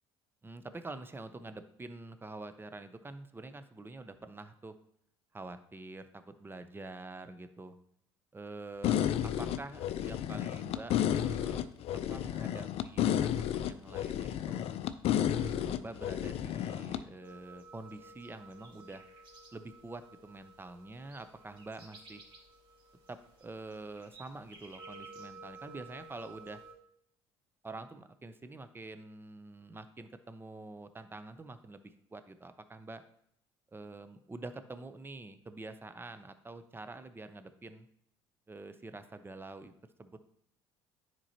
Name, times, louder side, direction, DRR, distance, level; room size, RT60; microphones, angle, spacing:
voice 1, 0.4-4.8 5.3-7.8 8.3-11.6 11.9-14.6 15.2-19.0 19.5-22.2 23.1-26.6 27.6-33.0 33.7-37.9 38.5-39.7 40.0-40.2, right 2 dB, 20° right, 10 dB, 0.7 m, -46 dB
sound 1, 8.8-17.0, left 10 dB, 55° left, 0.4 m, -32 dB
sound 2, 17.2-26.7, right 2 dB, 45° right, 2.5 m, -53 dB
9.8 x 4.4 x 2.9 m, 0.73 s
hypercardioid pair, 60°, 12 cm